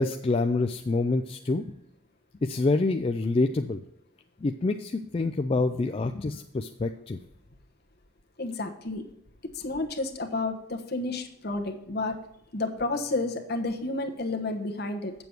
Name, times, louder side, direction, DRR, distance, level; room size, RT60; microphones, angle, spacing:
voice 1, 0.0-1.7 2.4-3.8 4.4-7.2, left 3 dB, 30° left, 6 dB, 0.3 m, -26 dB
voice 2, 8.4-9.0 9.4-12.2 12.5-15.1, left 2 dB, 55° left, 4 dB, 1.1 m, -31 dB
8.1 x 7.0 x 4.5 m, 0.79 s
head